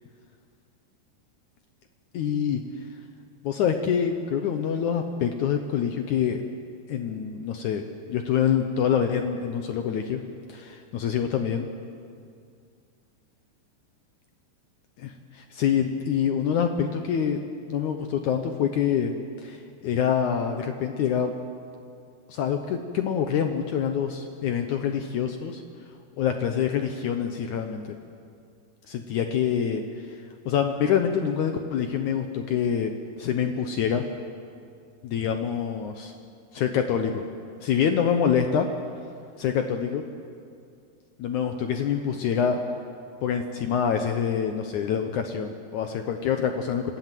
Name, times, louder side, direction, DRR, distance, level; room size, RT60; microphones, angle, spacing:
voice 1, 2.1-2.6 3.4-6.4 6.9-10.2 10.5-11.7 15.3-17.4 17.7-19.1 19.4-21.3 22.3-25.6 26.2-27.8 28.9-30.2 30.4-32.9 33.2-34.0 35.0-36.1 36.5-37.2 37.6-38.7 39.4-40.0 41.2-42.6 43.2-47.0, left 8 dB, 85° left, 6 dB, 1.7 m, -26 dB
25.5 x 13.5 x 9.2 m, 2.3 s
omnidirectional pair, 4.8 m